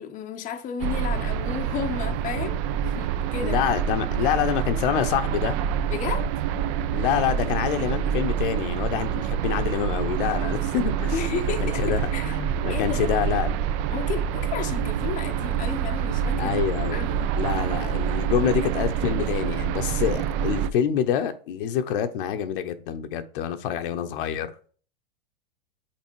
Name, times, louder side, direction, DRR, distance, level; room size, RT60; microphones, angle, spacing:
voice 1, 0.0-2.6 2.8-3.6 5.9-6.3 11.1-12.4 12.7-13.1 13.9-16.5 16.9-17.4, left 8 dB, 25° left, 0.7 m, -33 dB
sound 1, 0.8-20.7, right 8 dB, 35° right, 0.4 m, -26 dB
voice 2, 3.4-5.6 6.9-11.1 11.6-13.5 16.4-17.0 17.4-24.7, left 9 dB, 60° left, 0.9 m, -26 dB
5.9 x 4.1 x 4.6 m
hypercardioid pair, 120°, 30 cm